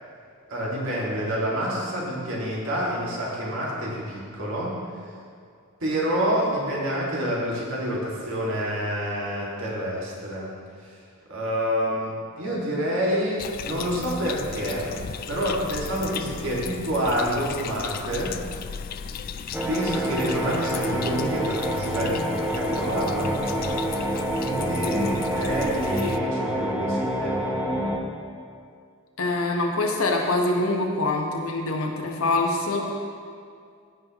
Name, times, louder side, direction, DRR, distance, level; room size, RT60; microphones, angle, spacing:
voice 1, 0.5-4.7 5.8-10.5 10.8-10.9 11.3-14.9 15.3-18.4 19.5-24.1 24.4-27.4, equal, 65° right, -5 dB, 2.1 m, -28 dB
sound 1, 13.4-26.2, left 7 dB, 45° left, 0.3 m, -36 dB
sound 2, 19.5-28.0, right 1 dB, 10° right, 0.8 m, -27 dB
voice 2, 29.2-33.0, left 2 dB, 70° left, 1 dB, 1.1 m, -25 dB
15.5 x 5.5 x 3.0 m, 2.3 s
head